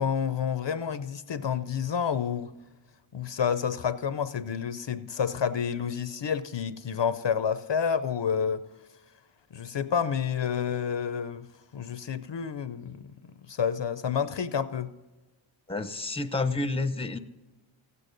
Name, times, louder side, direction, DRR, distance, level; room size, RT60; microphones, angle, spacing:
voice 1, 0.0-2.5 3.1-8.6 9.5-11.5 11.7-13.1 13.5-14.9, left 7 dB, 65° left, 0.6 m, -29 dB
voice 2, 15.7-17.2, left 3 dB, 10° left, 0.7 m, -29 dB
15.0 x 8.3 x 3.9 m
wide cardioid pair, 55°, 47 cm